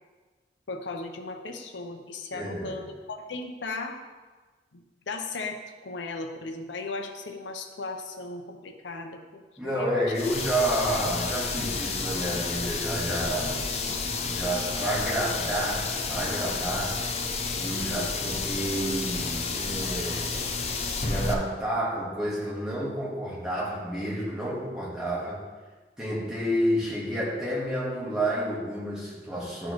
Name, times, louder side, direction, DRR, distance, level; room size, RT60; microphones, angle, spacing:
voice 1, 0.7-4.0 4.7-10.1 17.7-18.1, left 3 dB, 90° left, 5 dB, 0.7 m, -37 dB
voice 2, 2.3-2.8 9.6-13.6 14.2-17.0 17.6-20.5 21.0-25.4 26.0-29.7, right 1 dB, 5° right, -7 dB, 1.6 m, -30 dB
sound 1, 10.1-21.3, left 4 dB, 35° left, 0.5 m, -31 dB
11.5 x 4.5 x 3.1 m, 1.3 s
head